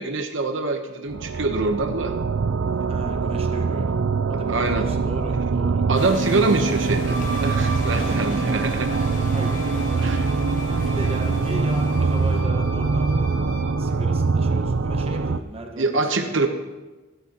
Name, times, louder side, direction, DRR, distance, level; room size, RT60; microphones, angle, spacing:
voice 1, 0.0-2.1 4.5-4.9 5.9-9.0 10.0-10.3 15.8-16.5, right 3 dB, 70° right, 5 dB, 1.0 m, -24 dB
sound 1, 1.1-15.4, right 4 dB, 90° right, 0.5 m, -23 dB
voice 2, 2.9-5.8 7.9-8.5 9.3-9.6 10.7-13.5 13.8-16.5, right 1 dB, 30° right, 2 dB, 1.4 m, -37 dB
sound 2, 5.9-12.4, left 2 dB, 45° left, 1.4 m, -39 dB
Wind instrument woodwind instrument, 7.0-13.8, right 1 dB, 50° right, 2.9 m, -38 dB
25.5 x 10.0 x 3.0 m, 1.2 s
head